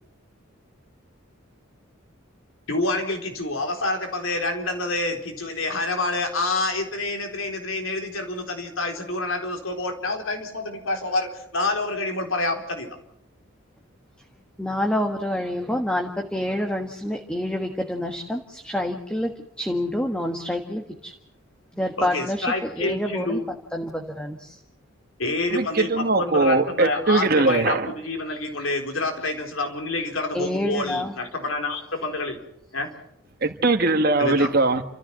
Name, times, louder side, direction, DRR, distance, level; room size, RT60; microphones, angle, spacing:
voice 1, 2.7-12.9 22.0-23.4 25.2-32.4 32.7-32.9 34.2-34.5, left 2 dB, 80° left, 4 dB, 4.1 m, -27 dB
voice 2, 14.6-21.1 21.7-23.4 23.7-24.6 30.3-31.1, left 1 dB, 5° left, 3 dB, 1.5 m, -27 dB
voice 3, 25.5-27.9 33.4-34.8, right 3 dB, 45° right, 7 dB, 1.5 m, -21 dB
30.0 x 14.5 x 7.6 m, 0.76 s
head